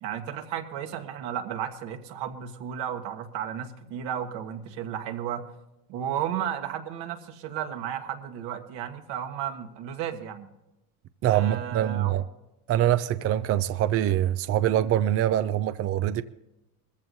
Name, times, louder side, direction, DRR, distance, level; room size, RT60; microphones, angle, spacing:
voice 1, 0.0-5.5 5.9-10.5 11.3-12.2, right 9 dB, 65° right, 1.6 m, -33 dB
voice 2, 11.2-12.2 12.7-16.2, right 12 dB, 35° right, 0.4 m, -24 dB
20.5 x 15.0 x 2.7 m
supercardioid pair, 110°, 47 cm